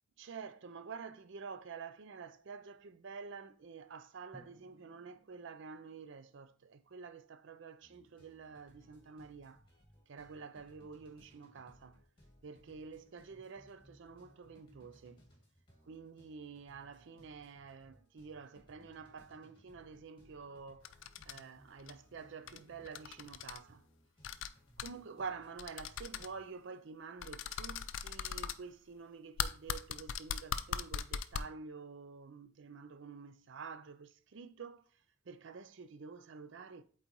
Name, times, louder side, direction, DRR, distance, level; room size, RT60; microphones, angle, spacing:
voice 1, 0.2-9.7 10.1-12.0 12.4-15.3 15.9-20.9 21.3-23.9 24.8-36.8, right 5 dB, 60° right, 0.5 m, -49 dB
Drum, 4.3-7.0, right 1 dB, 5° left, 0.6 m, -64 dB
sound 1, 7.8-26.5, equal, 25° left, 1.8 m, -65 dB
sound 2, 20.9-21.4 21.8-21.9 22.5-22.6 22.9-23.6 24.2-24.5 24.8-24.9 25.6-26.3 27.2-28.6 29.4-31.4, left 8 dB, 60° left, 0.4 m, -39 dB
8.2 x 4.0 x 3.0 m
head